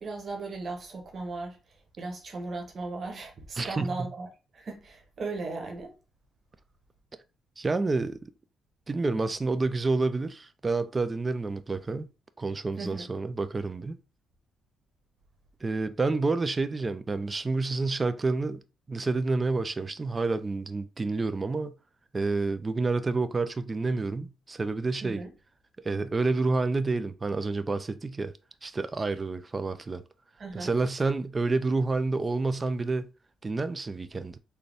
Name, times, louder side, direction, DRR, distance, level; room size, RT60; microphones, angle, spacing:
voice 1, 0.0-1.6 2.0-5.9 12.8-13.1 25.0-25.3 30.4-30.7, right 3 dB, 45° right, 1.1 m, -37 dB
voice 2, 3.6-4.1 7.6-8.2 8.9-12.1 12.4-14.0 15.6-18.6 18.9-21.7 22.1-25.2 25.8-28.3 28.6-30.0 30.5-33.0 33.4-34.4, right 3 dB, 25° right, 0.4 m, -29 dB
3.9 x 2.2 x 3.4 m
cardioid pair, 90°, 0 cm